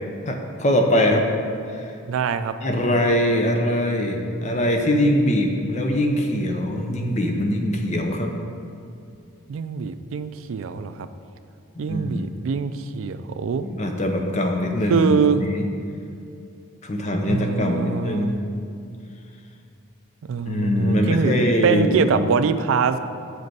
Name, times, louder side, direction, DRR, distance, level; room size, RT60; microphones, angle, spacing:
voice 1, 0.3-1.2 1.7-1.9 2.6-8.3 11.9-12.2 13.6-15.1 15.4-15.6 16.8-18.4 20.5-22.1, left 1 dB, 35° left, 3 dB, 0.6 m, -22 dB
voice 2, 2.0-2.5 9.5-11.1 11.8-13.7 14.9-15.4 17.3-18.4 20.3-21.3 21.6-23.0, right 5 dB, 70° right, 11 dB, 0.3 m, -23 dB
7.0 x 5.1 x 4.6 m, 2.6 s
head